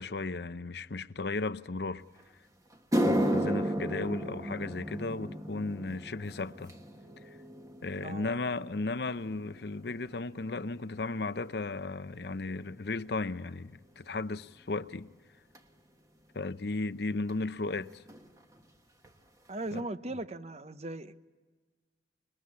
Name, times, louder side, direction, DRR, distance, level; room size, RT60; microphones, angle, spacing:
voice 1, 0.0-2.0 3.0-6.7 7.8-15.1 16.3-18.0 19.7-19.9, left 3 dB, 60° left, 0.7 m, -35 dB
sound 1, 2.2-2.3 2.7-11.2 11.5-11.9 12.7-12.8 15.5-15.6 17.3-17.4 17.6-17.8 18.1-18.6 19.0-19.1 19.7-19.8, equal, 20° right, 1.4 m, -34 dB
voice 2, 8.0-8.4 19.5-21.2, right 2 dB, 35° right, 0.8 m, -38 dB
27.5 x 21.5 x 8.6 m
head